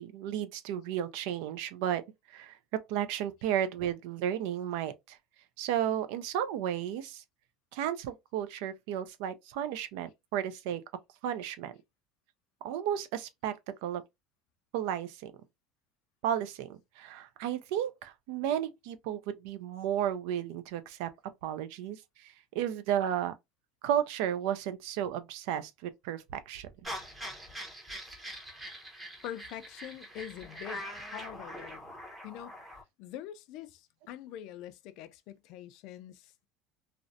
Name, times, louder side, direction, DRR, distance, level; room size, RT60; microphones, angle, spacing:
voice 1, 0.0-2.0 2.3-5.2 5.6-7.2 7.7-10.8 11.2-11.7 12.6-14.0 14.7-15.3 16.2-21.1 21.4-23.3 23.8-26.9, right 10 dB, 75° right, 0.4 m, -33 dB
sound 1, 26.8-32.8, equal, 10° right, 0.7 m, -43 dB
voice 2, 29.2-31.9 32.2-32.6 33.0-36.5, left 11 dB, 60° left, 0.3 m, -44 dB
2.5 x 2.1 x 2.5 m
cardioid pair, 135°, 0 cm